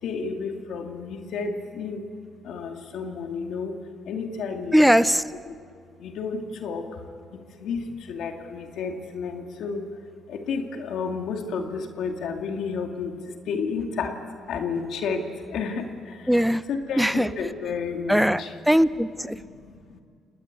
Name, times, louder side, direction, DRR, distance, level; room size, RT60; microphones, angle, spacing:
voice 1, 0.0-2.0 2.4-3.7 4.1-5.0 5.4-5.6 6.0-7.0 7.6-9.8 10.3-13.1 13.5-14.2 14.5-16.4 16.7-18.5 19.3-20.0, left 5 dB, 75° left, 3 dB, 2.5 m, -31 dB
voice 2, 4.7-5.2 16.3-16.6 17.0-17.3 18.1-19.4, equal, ahead, 15 dB, 0.7 m, -20 dB
30.0 x 19.5 x 8.6 m, 2.2 s
cardioid pair, 90°, 0 cm